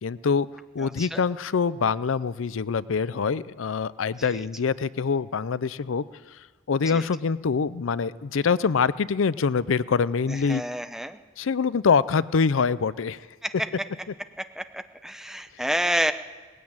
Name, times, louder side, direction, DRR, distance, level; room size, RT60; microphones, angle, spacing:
voice 1, 0.0-0.5 0.7-6.0 6.7-10.6 11.4-13.2, left 5 dB, 90° left, 18 dB, 0.5 m, -24 dB
voice 2, 0.8-1.2 4.2-4.5 6.9-7.1 10.3-11.2 13.4-13.7 14.6-16.1, equal, ahead, 9 dB, 0.8 m, -29 dB
19.0 x 16.0 x 8.7 m, 1.3 s
head